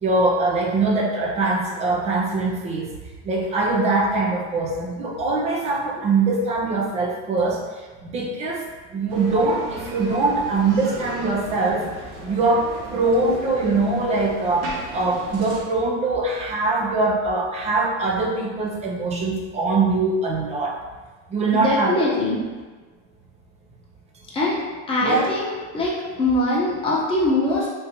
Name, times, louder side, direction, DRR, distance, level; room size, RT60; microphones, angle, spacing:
voice 1, 0.0-2.9 3.2-7.6 8.0-8.6 8.9-11.8 12.2-20.7 21.3-22.1 25.0-25.3, right 3 dB, 20° right, -1 dB, 0.4 m, -22 dB
Bicycle, 9.1-15.6, right 1 dB, 40° right, 0.8 m, -37 dB
voice 2, 21.5-22.4 24.3-24.6 24.9-27.7, left 2 dB, 15° left, -6 dB, 0.9 m, -22 dB
3.5 x 2.6 x 2.8 m, 1.3 s
supercardioid pair, 125°, 35 cm